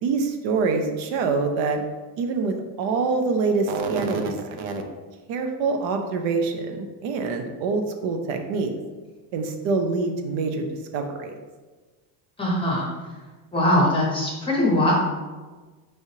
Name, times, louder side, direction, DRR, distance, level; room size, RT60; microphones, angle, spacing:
voice 1, 0.0-1.8 2.2-4.8 5.3-8.7 9.3-10.6 10.9-11.3, right 4 dB, 85° right, 5 dB, 0.7 m, -25 dB
voice 2, 12.4-12.9 13.5-14.9, left 1 dB, 10° left, -4 dB, 0.6 m, -21 dB
4.7 x 3.2 x 2.8 m, 1.3 s
cardioid pair, 175°, 44 cm